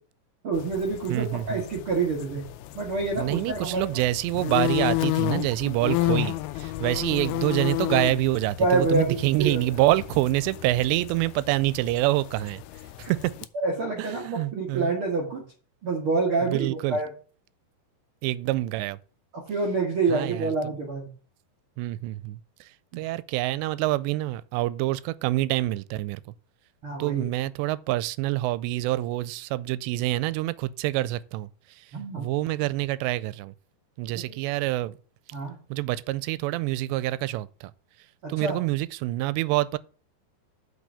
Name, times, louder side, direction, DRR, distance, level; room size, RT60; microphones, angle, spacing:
voice 1, 0.4-2.4 2.7-3.9 8.6-9.6 13.0-13.1 13.5-15.4 15.8-17.1 19.3-21.1 22.9-23.0 26.8-27.2 31.9-32.3 35.3-35.6 38.2-38.6, right 3 dB, 55° right, 1.5 m, -27 dB
sound 1, 0.5-13.5, left 17 dB, 85° left, 2.3 m, -32 dB
voice 2, 1.1-1.6 3.2-12.6 13.0-13.3 14.0-14.9 16.4-17.0 18.2-19.0 20.1-20.5 21.8-26.2 27.0-31.9 32.2-33.5 34.0-35.0 35.7-37.7 38.3-39.8, right 17 dB, 90° right, 2.8 m, -26 dB
6.2 x 5.8 x 6.8 m
omnidirectional pair, 4.9 m